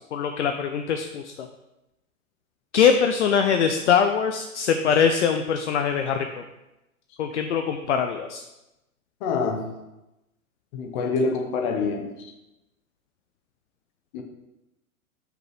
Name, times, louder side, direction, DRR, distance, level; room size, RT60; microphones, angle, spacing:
voice 1, 0.1-1.5 2.7-6.3 7.2-8.4, left 7 dB, 55° left, 6 dB, 0.5 m, -22 dB
voice 2, 9.2-9.6 10.7-12.1 14.1-14.2, left 4 dB, 35° left, 3 dB, 1.0 m, -26 dB
5.7 x 3.9 x 5.9 m, 0.96 s
figure-of-eight pair, 105°, 43 cm